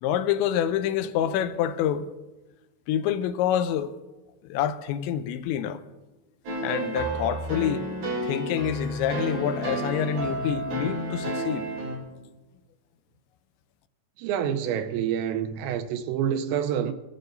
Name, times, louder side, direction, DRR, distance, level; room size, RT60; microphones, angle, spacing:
voice 1, 0.0-2.1 2.9-3.9 4.4-5.8 6.6-7.9 8.2-11.7, left 9 dB, 85° left, 2.9 m, -27 dB
sound 1, 6.5-12.0, right 1 dB, 55° right, 5.1 m, -31 dB
voice 2, 14.2-16.9, right 9 dB, 85° right, 3.0 m, -27 dB
21.0 x 14.5 x 2.6 m
omnidirectional pair, 5.2 m